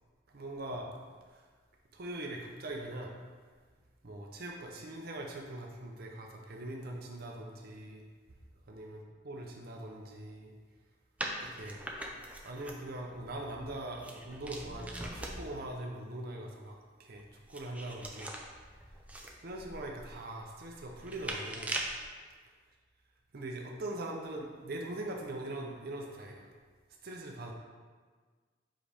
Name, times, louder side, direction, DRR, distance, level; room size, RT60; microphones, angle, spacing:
voice 1, 0.3-0.9 1.3-1.4 1.9-3.1 4.0-8.0 8.7-10.5 11.4-11.8 12.4-16.7 17.0-18.3 19.4-21.7 23.3-26.5 27.0-27.5, right 1 dB, 55° right, 1 dB, 0.7 m, -42 dB
sound 1, 11.2-15.7 17.1-22.0, right 1 dB, 10° right, 0.6 m, -42 dB
7.6 x 4.9 x 3.4 m, 1.5 s
head